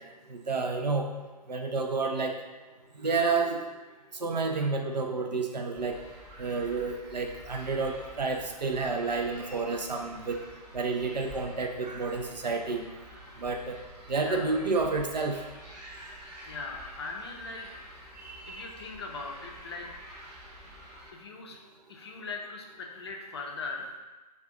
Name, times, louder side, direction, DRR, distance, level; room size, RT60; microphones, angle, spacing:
voice 1, 0.3-1.1 1.5-2.4 3.0-3.6 4.2-6.0 6.4-10.4 10.7-12.8 13.4-13.8 14.1-15.4 18.2-18.7, right 4 dB, 80° right, 2 dB, 0.5 m, -30 dB
sound 1, 5.7-21.1, equal, 15° right, 0.6 m, -49 dB
voice 2, 14.2-14.5 15.9-16.0 16.4-17.7 18.1-19.9 21.1-21.6 21.9-24.0, left 3 dB, 40° left, 1 dB, 0.4 m, -40 dB
2.5 x 2.4 x 3.5 m, 1.2 s
figure-of-eight pair, 135°, 21 cm